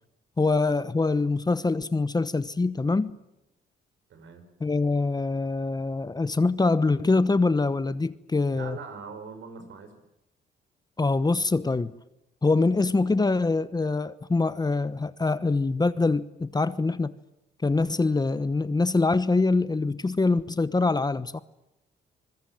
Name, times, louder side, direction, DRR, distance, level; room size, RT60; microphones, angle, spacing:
voice 1, 0.4-3.1 4.6-8.8 11.0-11.9 12.4-17.1 17.6-21.4, left 3 dB, 20° left, 1.0 m, -24 dB
voice 2, 4.1-4.4 8.5-9.9, right 5 dB, 75° right, 5.4 m, -41 dB
25.5 x 21.5 x 9.2 m
cardioid pair, 90°, 20 cm